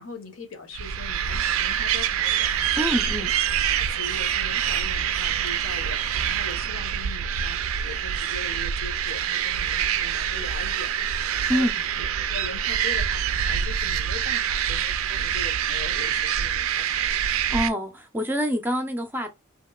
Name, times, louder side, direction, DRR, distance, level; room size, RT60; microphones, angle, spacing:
voice 1, 0.0-2.9 3.2-3.3 3.8-11.7 12.0-17.2, left 3 dB, 70° left, 0.8 m, -41 dB
sound 1, 0.7-17.7, right 9 dB, 70° right, 0.4 m, -26 dB
voice 2, 2.8-3.3 11.5-11.7 17.5-19.3, equal, 10° right, 0.5 m, -26 dB
2.9 x 2.9 x 2.2 m
head